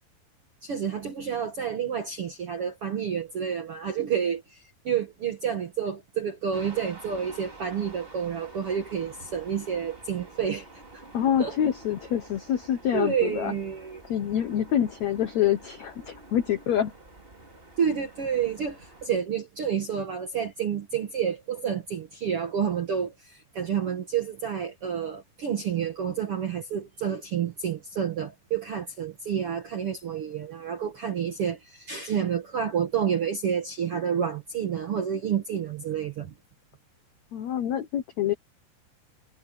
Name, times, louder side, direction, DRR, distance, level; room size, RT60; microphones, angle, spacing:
voice 1, 0.6-10.7 10.9-11.0 11.4-11.6 12.9-14.0 17.8-36.3, right 8 dB, 60° right, 1.5 m, -29 dB
sound 1, 6.5-19.1, right 2 dB, 15° right, 3.2 m, -48 dB
voice 2, 11.1-13.5 14.1-16.9 37.3-38.3, left 10 dB, 75° left, 1.6 m, -26 dB
omnidirectional pair, 4.7 m